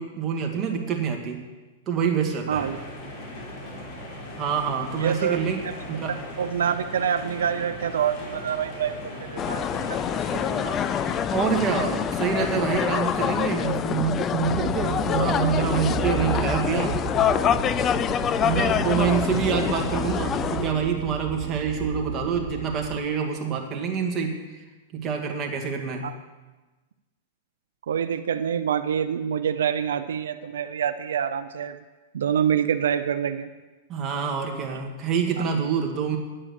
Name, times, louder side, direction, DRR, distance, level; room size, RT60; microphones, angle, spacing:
voice 1, 0.0-1.4 1.9-2.7 4.4-5.6 5.9-6.2 11.3-16.9 18.4-24.4 24.9-26.1 33.9-36.2, right 6 dB, 25° right, 1 dB, 2.0 m, -26 dB
sound 1, 2.5-11.2, left 1 dB, 40° left, 4.5 m, -38 dB
voice 2, 2.5-2.8 5.0-5.4 5.6-5.7 6.4-10.8 11.8-12.0 26.0-26.1 27.9-31.8 32.1-33.5 34.7-34.8 35.4-35.5, right 8 dB, 85° right, 9 dB, 0.6 m, -26 dB
sound 2, 9.4-20.7, left 9 dB, 25° left, 0.4 m, -26 dB
sound 3, 14.4-23.0, right 5 dB, 65° right, 2.3 m, -32 dB
9.8 x 8.8 x 7.1 m, 1.2 s
hypercardioid pair, 140°, 0 cm